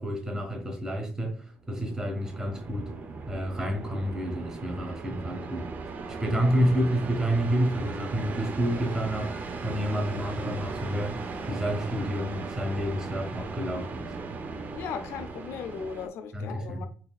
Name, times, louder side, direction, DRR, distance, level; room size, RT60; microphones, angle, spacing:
voice 1, 0.0-2.9 3.3-5.7 6.1-9.3 9.6-14.1 16.3-16.9, equal, 15° right, 1.0 m, -29 dB
sound 1, 1.6-16.1, right 3 dB, 40° right, 0.5 m, -37 dB
voice 2, 14.7-16.9, left 6 dB, 80° left, 0.5 m, -37 dB
4.1 x 3.3 x 2.3 m
cardioid pair, 150°, 4 cm